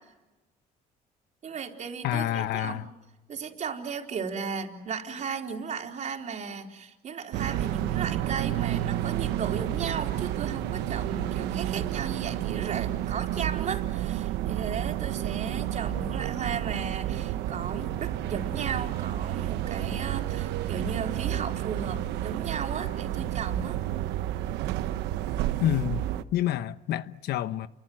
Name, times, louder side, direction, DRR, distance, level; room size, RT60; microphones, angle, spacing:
voice 1, 1.4-2.8 3.3-23.8, right 6 dB, 45° right, 4.1 m, -35 dB
voice 2, 2.0-2.9 25.6-26.0 26.3-27.7, left 12 dB, 70° left, 1.1 m, -28 dB
sound 1, 7.3-26.2, right 13 dB, 90° right, 1.1 m, -30 dB
30.0 x 24.0 x 7.8 m
cardioid pair, 110°, 17 cm